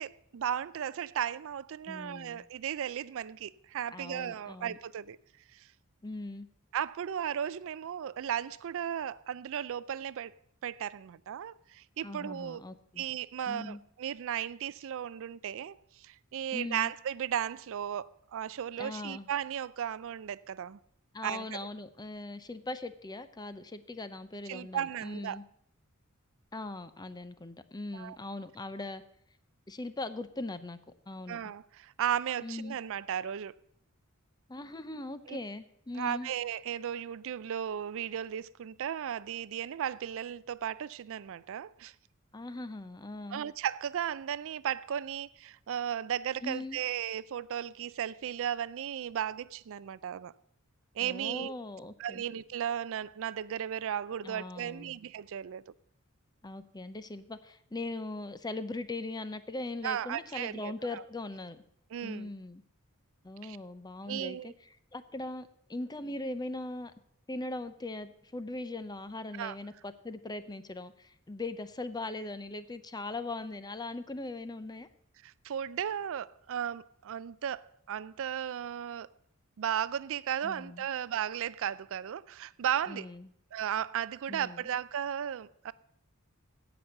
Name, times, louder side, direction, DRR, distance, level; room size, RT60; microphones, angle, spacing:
voice 1, 0.0-5.2 5.5-5.7 6.7-10.3 10.6-12.6 13.0-20.8 21.2-21.6 24.5-25.4 27.9-28.2 31.3-33.5 35.3-35.4 36.0-41.9 43.3-50.3 51.0-51.5 52.0-55.6 59.8-61.0 61.9-62.3 63.4-63.6 64.1-64.5 69.4-69.6 75.2-79.1 79.6-83.1 83.5-85.7, right 9 dB, 65° right, 0.4 m, -35 dB
voice 2, 1.9-2.4 3.9-4.8 6.0-6.5 12.0-13.0 13.5-13.8 16.5-16.9 18.8-19.3 21.1-25.4 26.5-29.0 29.7-30.8 31.1-31.4 32.4-32.8 34.5-36.3 42.3-43.4 46.4-46.8 51.0-52.2 54.2-54.9 56.4-61.6 62.0-62.6 63.2-64.5 64.9-66.9 67.3-74.9 80.4-80.9 82.9-83.3 84.3-84.7, left 2 dB, 20° left, 0.6 m, -40 dB
16.5 x 6.1 x 6.5 m
head